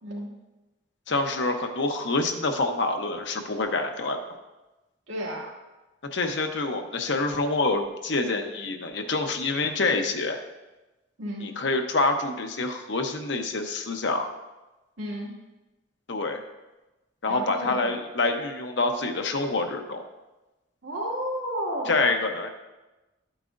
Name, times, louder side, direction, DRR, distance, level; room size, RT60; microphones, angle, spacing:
voice 1, 1.1-4.2 6.1-10.4 11.4-14.3 16.1-16.4 17.2-20.0 21.9-22.5, left 3 dB, 65° left, 5 dB, 0.9 m, -26 dB
voice 2, 5.1-5.5 11.2-11.5 15.0-15.3 17.3-17.9 20.8-22.1, equal, 85° right, -5 dB, 2.2 m, -32 dB
12.0 x 8.9 x 2.6 m, 1.1 s
head